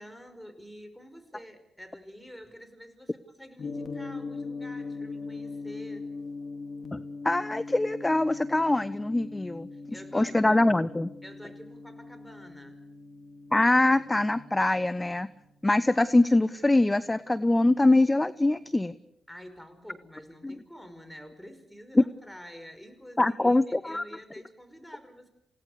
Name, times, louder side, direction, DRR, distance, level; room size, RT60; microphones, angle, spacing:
voice 1, 0.0-6.1 9.7-10.6 11.2-12.8 19.3-25.3, equal, 5° left, 8 dB, 5.4 m, -48 dB
Gong, 3.6-17.8, left 3 dB, 55° left, 2.3 m, -41 dB
voice 2, 6.9-9.7 10.1-11.1 13.5-15.3 15.6-18.9 20.4-20.5 21.9-22.0 23.2-24.0, left 2 dB, 20° left, 16 dB, 0.8 m, -23 dB
28.5 x 17.5 x 6.7 m, 0.80 s
supercardioid pair, 45°, 0 cm